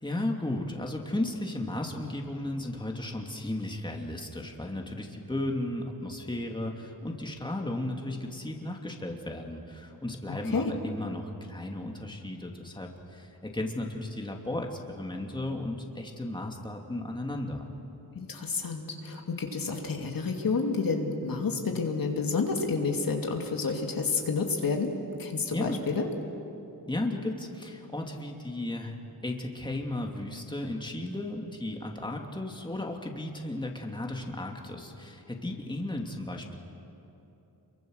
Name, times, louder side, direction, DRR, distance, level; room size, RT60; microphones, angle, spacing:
voice 1, 0.0-17.7 25.5-25.8 26.9-29.0 29.2-36.6, left 1 dB, 10° left, 1 dB, 2.7 m, -35 dB
voice 2, 10.3-10.7 18.1-24.9 25.2-26.1, left 4 dB, 60° left, 2 dB, 2.6 m, -30 dB
28.0 x 23.5 x 6.5 m, 2.9 s
cardioid pair, 75°, 38 cm